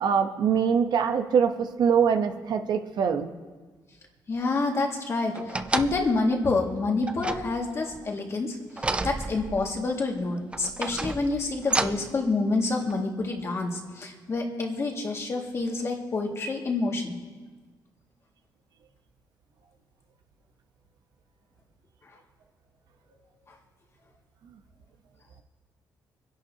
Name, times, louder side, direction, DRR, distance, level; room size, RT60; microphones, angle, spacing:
voice 1, 0.0-3.3, right 7 dB, 70° right, 6 dB, 0.9 m, -23 dB
voice 2, 4.3-5.3 5.7-8.6 9.0-17.2, left 3 dB, 40° left, 0 dB, 2.0 m, -27 dB
sound 1, 5.3-6.2 7.1-8.0 8.8-9.8 10.5-12.2 12.9-13.0, right 2 dB, 15° right, 0.4 m, -31 dB
26.5 x 11.0 x 2.8 m, 1.3 s
cardioid pair, 125°, 8 cm